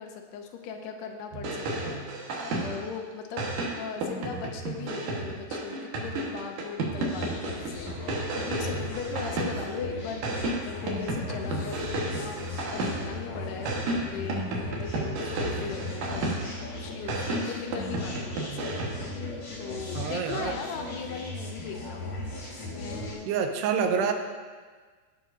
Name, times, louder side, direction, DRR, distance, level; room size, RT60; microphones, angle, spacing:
voice 1, 0.0-3.5 3.8-16.3 16.7-19.2 19.6-22.1 22.6-23.3, left 6 dB, 85° left, 3 dB, 2.8 m, -39 dB
sound 1, 1.3-3.0 3.4-9.8 10.2-13.2 13.7-16.7 17.1-19.1, right 2 dB, 60° right, 2.5 m, -32 dB
sound 2, 7.0-23.1, left 2 dB, 45° left, 3.0 m, -37 dB
voice 2, 20.0-20.6 23.3-24.1, right 6 dB, 90° right, 5 dB, 2.8 m, -27 dB
17.5 x 7.6 x 2.6 m, 1.5 s
omnidirectional pair, 4.8 m